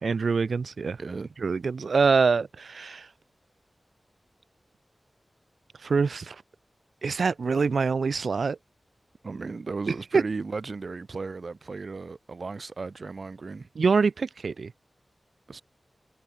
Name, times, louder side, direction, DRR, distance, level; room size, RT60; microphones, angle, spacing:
voice 1, 0.0-1.0 1.4-3.1 5.8-6.4 7.0-8.6 10.1-10.2 13.8-14.7, right 5 dB, 90° right, 2.0 m, -24 dB
voice 2, 1.0-1.3 9.2-13.7 15.5-15.6, right 4 dB, 70° right, 1.6 m, -35 dB
wide cardioid pair, 55°, 0 cm